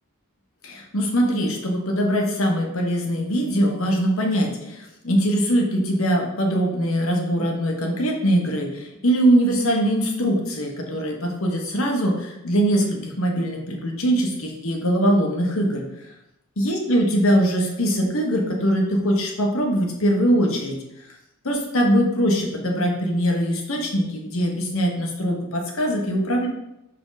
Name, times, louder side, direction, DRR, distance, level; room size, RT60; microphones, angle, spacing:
voice 1, 0.6-15.8 16.6-20.8 21.4-26.5, equal, 70° left, 1 dB, 1.3 m, -22 dB
6.1 x 4.8 x 4.0 m, 0.88 s
head